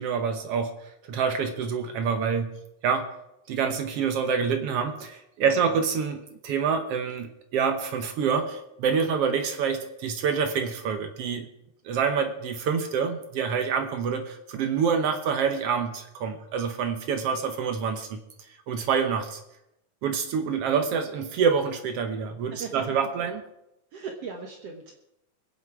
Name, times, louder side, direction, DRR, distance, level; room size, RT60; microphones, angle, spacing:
voice 1, 0.0-3.1 3.5-11.5 11.8-18.2 18.7-19.4 20.0-23.4, right 6 dB, 80° right, 6 dB, 1.3 m, -27 dB
voice 2, 5.4-5.7 22.5-22.7 23.9-25.0, right 5 dB, 60° right, 3 dB, 1.7 m, -39 dB
22.0 x 8.2 x 4.6 m, 0.86 s
omnidirectional pair, 3.9 m